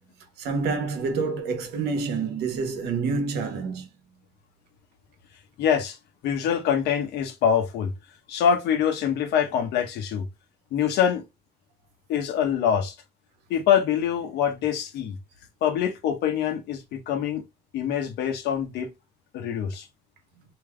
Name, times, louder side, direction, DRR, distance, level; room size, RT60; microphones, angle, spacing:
voice 1, 0.4-3.9, right 4 dB, 75° right, 1.0 m, -27 dB
voice 2, 5.6-6.0 6.2-7.9 8.3-10.2 10.7-11.2 12.1-12.9 13.5-15.1 15.6-17.4 17.7-18.9 19.3-19.9, left 8 dB, 80° left, 0.9 m, -24 dB
3.4 x 2.8 x 2.2 m
cardioid pair, 110°, 17 cm